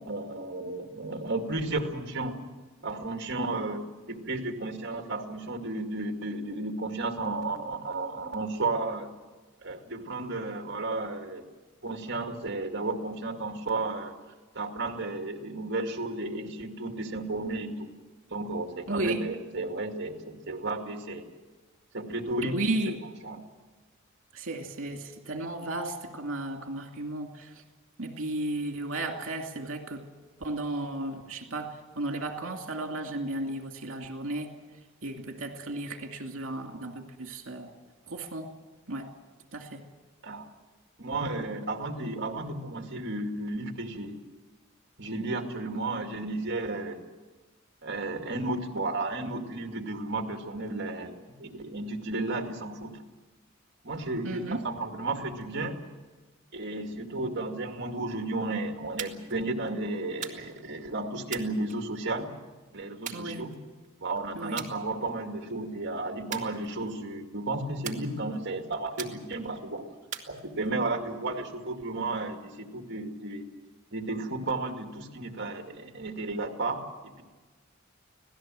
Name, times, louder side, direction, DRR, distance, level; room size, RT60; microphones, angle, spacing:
voice 1, 0.0-2.4 2.8-9.1 9.6-11.4 11.8-14.1 14.5-17.9 18.3-21.2 21.9-22.6 23.2-23.4 40.2-40.5 41.0-44.2 45.0-47.0 47.8-51.1 51.4-53.0 53.8-55.8 56.5-62.3 62.7-63.5 64.0-69.8 70.3-73.5 73.9-77.2, right 2 dB, 55° right, 5 dB, 2.2 m, -33 dB
voice 2, 18.9-19.2 22.4-23.0 24.3-27.5 28.0-30.0 30.4-34.5 35.0-37.7 38.1-38.5 38.9-39.1 39.5-39.8 54.2-54.6 63.1-63.4 64.4-64.6, right 2 dB, 75° right, 3 dB, 2.5 m, -34 dB
sound 1, 59.0-59.4 60.2-60.7 61.3-62.2 63.1-63.9 64.6-64.8 65.2-65.5 66.3-67.1 67.8-68.5 69.0-69.5 70.1-70.9, right 8 dB, 35° right, 2.1 m, -41 dB
26.0 x 17.5 x 7.7 m, 1.3 s
head